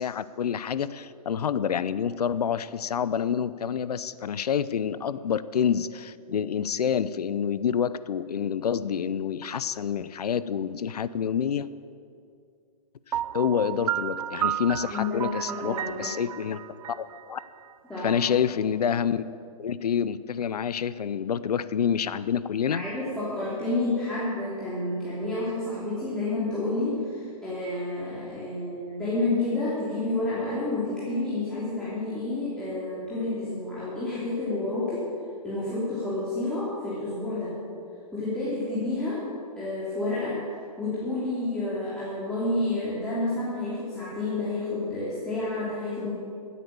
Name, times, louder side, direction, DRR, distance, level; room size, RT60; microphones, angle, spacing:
voice 1, 0.0-11.7 13.1-16.6 16.9-17.0 17.3-17.4 18.0-19.2 19.6-22.8, left 8 dB, 80° left, 16 dB, 0.6 m, -27 dB
Piano, 13.1-18.0, right 11 dB, 65° right, 0.4 m, -32 dB
voice 2, 14.9-16.1 17.9-18.2 22.5-35.1 35.4-37.6 38.1-39.3 39.6-40.4 40.8-46.1, left 2 dB, 5° left, -11 dB, 3.0 m, -30 dB
15.0 x 8.5 x 7.0 m, 2.4 s
hypercardioid pair, 130°, 20 cm